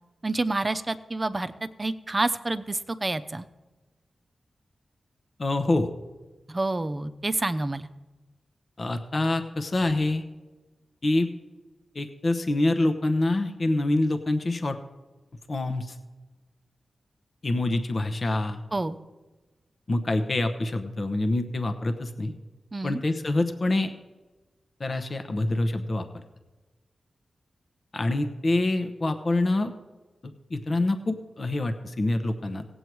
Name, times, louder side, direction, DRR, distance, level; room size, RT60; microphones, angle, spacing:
voice 1, 0.2-1.5 1.8-3.4 6.5-7.9 18.7-19.0 22.7-23.0, right 2 dB, 35° right, 11 dB, 0.7 m, -28 dB
voice 2, 5.4-5.9 8.8-10.2 11.0-11.3 11.9-14.8 15.5-16.0 17.4-18.6 19.9-22.3 22.8-23.9 24.8-26.1 27.9-29.7 30.2-32.6, left 2 dB, 55° left, 7 dB, 0.9 m, -26 dB
16.5 x 8.0 x 4.7 m, 1.2 s
cardioid pair, 40°, 0 cm